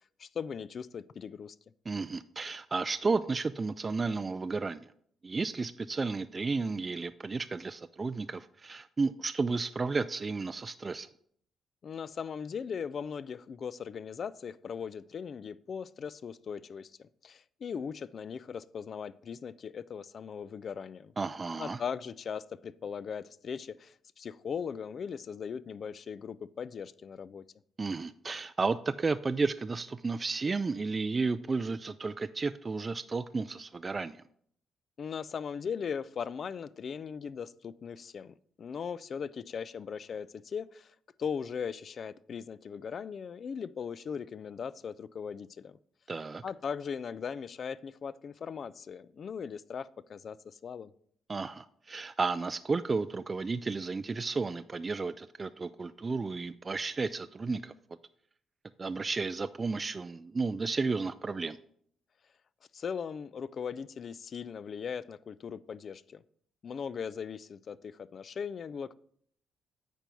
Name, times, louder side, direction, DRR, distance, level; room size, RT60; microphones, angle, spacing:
voice 1, 0.2-1.6 11.8-21.1 21.6-27.4 35.0-40.9 41.2-45.8 46.4-50.9 62.7-66.2 66.6-68.9, left 6 dB, 50° left, 19 dB, 0.4 m, -39 dB
voice 2, 1.9-4.9 5.2-11.1 21.2-21.8 27.8-34.2 46.1-46.4 51.3-57.7 58.8-61.6, right 4 dB, 30° right, 12 dB, 0.3 m, -32 dB
9.0 x 4.5 x 5.4 m, 0.64 s
cardioid pair, 90°, 0 cm